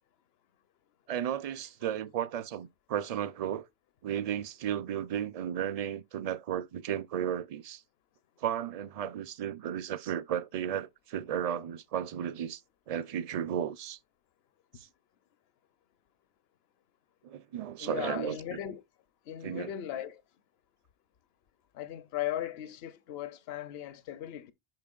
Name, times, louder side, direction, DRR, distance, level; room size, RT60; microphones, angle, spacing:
voice 1, 1.1-3.7 4.0-7.8 8.4-12.6 12.9-14.0 14.8-14.9 17.2-18.6 19.4-19.7, right 9 dB, 50° right, 0.5 m, -34 dB
voice 2, 17.8-18.8 19.3-20.2 21.7-24.5, left 12 dB, 80° left, 0.9 m, -37 dB
8.8 x 5.6 x 2.4 m
omnidirectional pair, 1.0 m